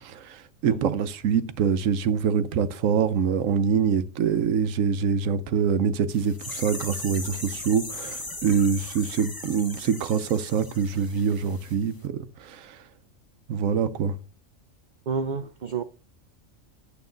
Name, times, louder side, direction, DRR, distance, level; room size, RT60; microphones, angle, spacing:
voice 1, 0.0-12.7 13.5-14.2, right 7 dB, 85° right, 1.1 m, -25 dB
sound 1, 6.1-11.7 12.0-12.1, left 1 dB, 15° left, 1.2 m, -38 dB
voice 2, 15.1-15.8, right 5 dB, 55° right, 0.5 m, -29 dB
9.3 x 7.1 x 3.8 m
omnidirectional pair, 1.3 m